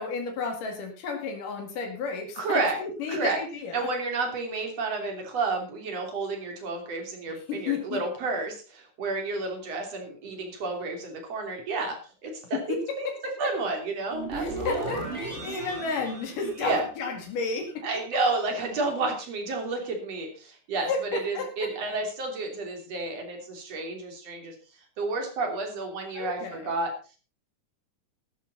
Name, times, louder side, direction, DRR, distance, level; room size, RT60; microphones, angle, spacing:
voice 1, 0.0-3.9 7.5-8.0 12.7-12.8 14.3-17.8 20.8-21.5 26.2-26.7, left 4 dB, 85° left, 2 dB, 4.0 m, -32 dB
voice 2, 2.4-2.8 3.1-3.4 3.7-13.1 13.4-15.1 16.6-16.9 17.8-24.6 25.0-26.9, right 3 dB, 50° right, 3 dB, 4.1 m, -31 dB
sound 1, 14.1-17.4, right 2 dB, 20° right, 3.5 m, -37 dB
13.5 x 12.5 x 4.1 m, 0.35 s
omnidirectional pair, 3.6 m